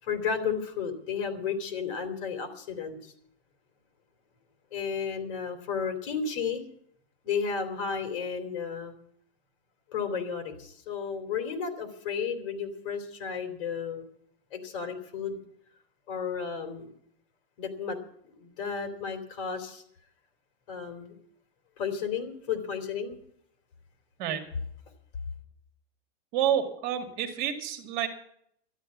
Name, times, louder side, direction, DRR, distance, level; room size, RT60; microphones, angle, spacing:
voice 1, 0.0-3.1 4.7-6.6 7.2-8.9 9.9-14.1 14.5-15.4 16.1-16.9 17.6-19.8 20.7-21.2 21.8-23.2, left 6 dB, 55° left, 6 dB, 3.1 m, -33 dB
voice 2, 26.3-28.1, right 10 dB, 45° right, 6 dB, 2.1 m, -29 dB
12.5 x 11.0 x 7.3 m, 0.69 s
supercardioid pair, 165°, 32 cm